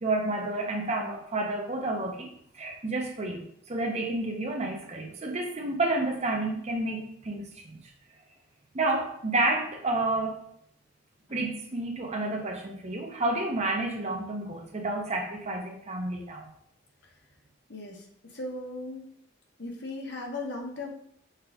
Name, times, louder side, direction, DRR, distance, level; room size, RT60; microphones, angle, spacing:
voice 1, 0.0-7.9 8.7-10.4 11.3-16.5, right 2 dB, 35° right, 3 dB, 0.6 m, -30 dB
voice 2, 17.7-19.1 19.6-20.9, left 2 dB, 60° left, 1 dB, 0.9 m, -37 dB
5.7 x 2.4 x 3.4 m, 0.70 s
head